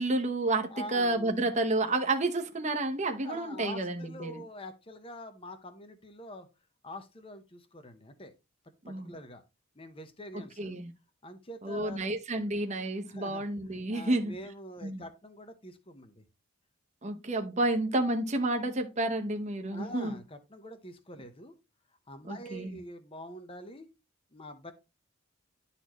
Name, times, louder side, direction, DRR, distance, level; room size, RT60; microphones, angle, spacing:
voice 1, 0.0-4.4 8.8-9.1 10.3-10.9 11.6-14.3 14.8-15.0 17.0-20.2 22.3-22.8, right 2 dB, 35° right, 0.9 m, -30 dB
voice 2, 0.7-1.4 3.2-6.5 6.8-8.3 8.9-9.4 9.7-10.8 11.2-12.1 13.1-13.4 13.9-16.2 19.7-21.5 22.1-23.9 24.3-24.7, left 1 dB, 25° left, 0.9 m, -45 dB
11.5 x 4.2 x 3.1 m
head